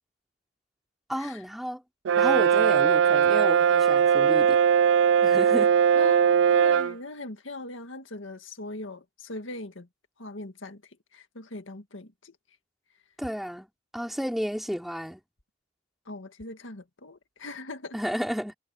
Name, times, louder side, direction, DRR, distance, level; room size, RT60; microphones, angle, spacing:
voice 1, 1.1-1.8 2.2-4.6 5.2-5.7 13.2-15.2 17.9-18.5, equal, ahead, 4.7 m, -32 dB
Brass instrument, 2.0-6.9, right 8 dB, 80° right, 0.4 m, -20 dB
voice 2, 6.0-9.9 10.2-10.8 11.1-12.4 16.1-18.0, left 2 dB, 85° left, 2.0 m, -40 dB
head